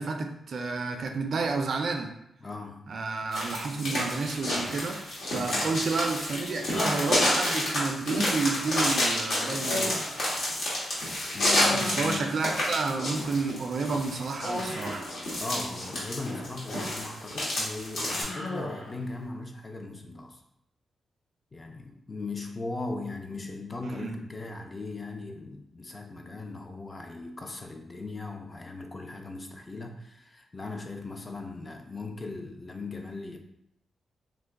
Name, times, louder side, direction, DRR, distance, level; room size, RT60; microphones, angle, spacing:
voice 1, 0.0-2.2 2.9-10.4 11.7-15.1 23.8-24.2, right 4 dB, 50° right, 4 dB, 0.3 m, -31 dB
voice 2, 2.4-2.8 5.3-5.7 11.3-12.2 15.4-20.4 21.5-33.4, left 3 dB, 25° left, 3 dB, 0.3 m, -38 dB
sound 1, 3.3-18.2, left 1 dB, 75° left, 1.2 m, -29 dB
Human voice, 6.7-7.6 8.1-8.8 9.6-11.1 11.4-12.4 14.4-15.1 16.1-17.2 17.5-17.7 18.2-19.0, left 1 dB, 55° left, 1.2 m, -36 dB
3.0 x 2.2 x 3.4 m, 0.77 s
wide cardioid pair, 150°, 0 cm